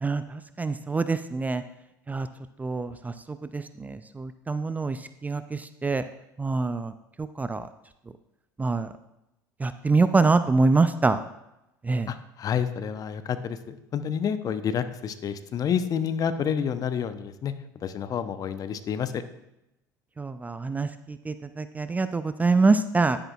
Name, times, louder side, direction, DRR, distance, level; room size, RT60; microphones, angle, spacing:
voice 1, 0.0-1.6 2.1-2.3 2.6-6.0 6.4-6.9 7.2-7.7 8.6-8.9 9.6-11.2 11.8-12.1 20.2-23.2, right 3 dB, 15° right, 11 dB, 0.4 m, -25 dB
voice 2, 12.1-17.5 17.8-19.2, left 8 dB, 40° left, 11 dB, 0.7 m, -29 dB
10.5 x 10.0 x 2.4 m, 0.88 s
hypercardioid pair, 70°, 10 cm